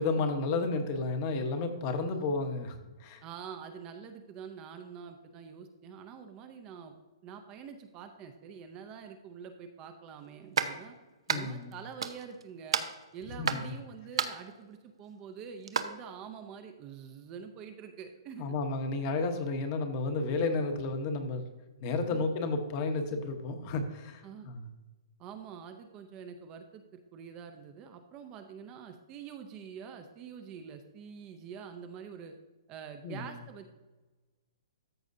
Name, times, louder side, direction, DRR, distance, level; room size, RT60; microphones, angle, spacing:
voice 1, 0.0-3.2 11.3-11.8 13.4-13.7 18.4-21.4 21.8-24.7 33.0-33.3, left 3 dB, 30° left, 6 dB, 1.0 m, -32 dB
voice 2, 3.2-6.9 7.2-11.0 11.3-12.8 13.1-18.5 22.1-22.3 24.2-24.5 25.2-32.3 32.7-33.7, right 7 dB, 25° right, 7 dB, 0.6 m, -46 dB
sound 1, 10.6-10.7 11.3-11.7 12.0-12.4 12.7-13.7 14.2-14.5 15.6-15.8, right 6 dB, 85° right, 0.8 m, -31 dB
13.5 x 6.3 x 2.7 m, 1.1 s
hypercardioid pair, 160°, 3 cm